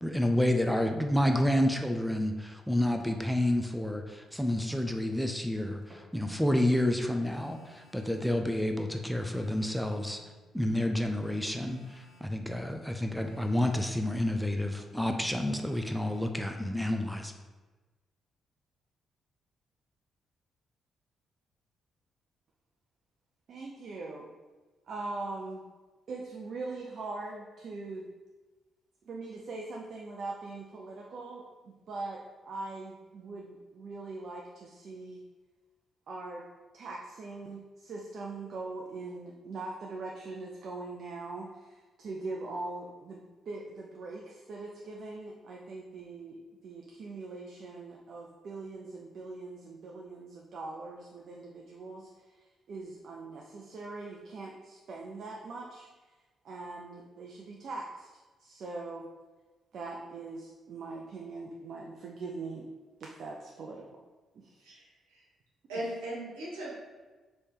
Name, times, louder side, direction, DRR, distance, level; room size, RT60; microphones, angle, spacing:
voice 1, 0.0-10.2 10.5-17.3, left 1 dB, ahead, 4 dB, 0.5 m, -29 dB
Thump thud, 3.0-3.2 4.3-4.4 5.8-6.1 6.5-6.6 8.2-8.4 9.2-9.3 9.5-9.7 11.0-11.3, equal, 35° right, 1.3 m, -54 dB
Telephone, 7.2-8.3 9.2-10.4 11.2-12.4 13.2-14.3 15.2-16.3, left 2 dB, 70° left, 0.6 m, -58 dB
voice 2, 23.5-24.3 24.9-25.6 26.1-28.1 29.0-35.2 36.1-36.4 36.7-55.9 56.4-58.1 58.4-59.1 59.7-62.6 63.0-63.8 64.3-64.6, right 3 dB, 60° right, -1 dB, 0.5 m, -41 dB
voice 3, 64.6-65.3 65.7-66.7, right 1 dB, 90° right, -5 dB, 1.1 m, -38 dB
3.3 x 3.2 x 4.3 m, 1.3 s
hypercardioid pair, 45°, 0 cm